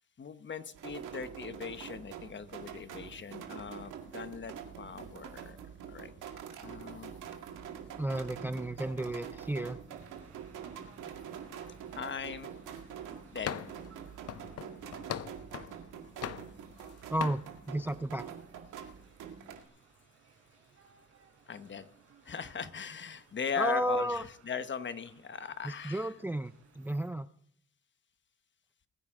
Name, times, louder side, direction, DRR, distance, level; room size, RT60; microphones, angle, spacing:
voice 1, 0.2-5.6 5.9-6.1 6.6-7.2 11.9-12.5 13.3-13.5 21.5-21.9 22.2-26.1, left 6 dB, 40° left, 11 dB, 1.1 m, -39 dB
sound 1, 0.7-19.6, right 8 dB, 85° right, 2.1 m, -45 dB
voice 2, 8.0-9.8 17.1-17.4 17.7-18.3 23.6-24.2 25.6-27.3, right 1 dB, 5° right, 12 dB, 0.5 m, -33 dB
sound 2, 9.9-27.1, right 6 dB, 55° right, 4.1 m, -62 dB
sound 3, 13.5-13.9 14.3-15.8 16.2-16.9 17.2-17.5, left 9 dB, 55° left, 0.8 m, -39 dB
21.5 x 9.6 x 3.8 m, 0.63 s
cardioid pair, 90°, 30 cm